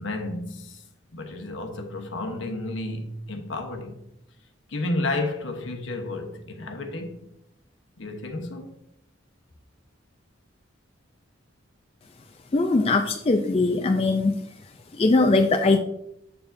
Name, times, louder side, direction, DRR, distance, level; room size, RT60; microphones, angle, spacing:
voice 1, 0.0-4.0 4.7-7.3 8.0-8.7, left 2 dB, 70° left, 1.0 m, -32 dB
voice 2, 12.5-14.4 15.0-15.8, left 3 dB, 30° left, 0.4 m, -21 dB
6.8 x 6.7 x 2.6 m
head